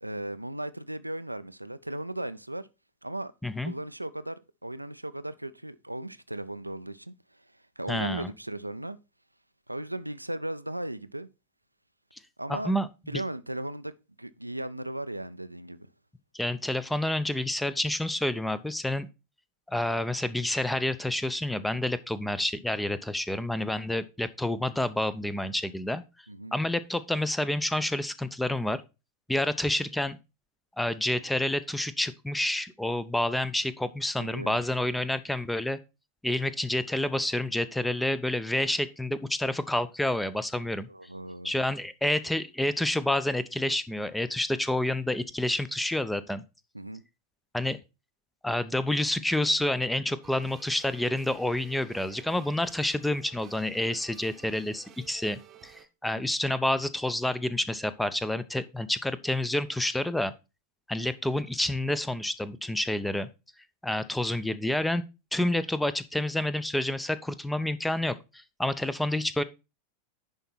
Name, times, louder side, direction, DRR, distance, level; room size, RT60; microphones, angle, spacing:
voice 1, 0.0-2.7 3.0-3.3 3.6-9.0 9.7-11.3 12.4-12.7 13.1-13.9 14.2-15.9 26.3-26.5 34.2-34.6 40.9-41.5 46.7-47.0, right 1 dB, 85° right, 0.4 m, -37 dB
voice 2, 3.4-3.7 7.9-8.3 12.5-12.9 13.1-13.2 16.3-19.1 19.7-26.0 26.5-28.8 29.3-30.2 30.8-35.8 36.2-40.9 41.4-46.4 47.5-47.8 48.4-60.3 60.9-63.3 63.8-65.0 65.3-69.4, left 1 dB, 5° left, 0.6 m, -29 dB
sound 1, 50.2-55.9, right 9 dB, 25° right, 0.9 m, -53 dB
10.5 x 4.5 x 4.2 m
figure-of-eight pair, 90°, 0 cm